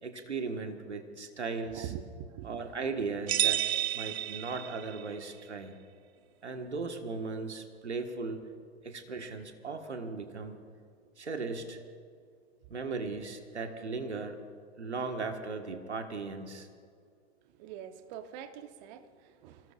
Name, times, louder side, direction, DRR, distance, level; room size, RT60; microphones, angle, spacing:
voice 1, 0.0-1.9 2.4-3.7 3.9-5.7 6.4-8.4 8.8-10.6 11.2-11.8 12.7-14.4 14.8-16.7, right 4 dB, 85° right, 5 dB, 1.7 m, -37 dB
voice 2, 1.7-3.0 17.6-19.7, right 9 dB, 40° right, 9 dB, 1.1 m, -44 dB
sound 1, 3.3-5.1, right 11 dB, 70° right, 0.7 m, -30 dB
27.0 x 18.5 x 2.5 m, 2.2 s
figure-of-eight pair, 105°, 33 cm